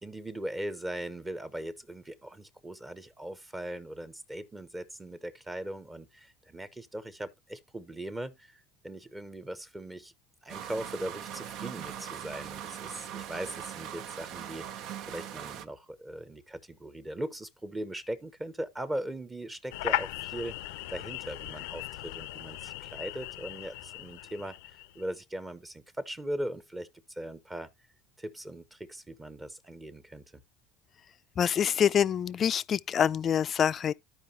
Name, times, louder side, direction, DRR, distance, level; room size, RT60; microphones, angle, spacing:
voice 1, 0.0-10.1 10.4-20.6 20.9-27.7 28.2-30.2, right 1 dB, 15° right, 0.8 m, -39 dB
sound 1, 10.5-15.7, right 10 dB, 60° right, 0.7 m, -41 dB
sound 2, 19.7-25.0, left 16 dB, 85° left, 0.6 m, -37 dB
voice 2, 31.4-33.9, left 8 dB, 35° left, 0.4 m, -26 dB
14.0 x 4.9 x 2.8 m
supercardioid pair, 120°, 0 cm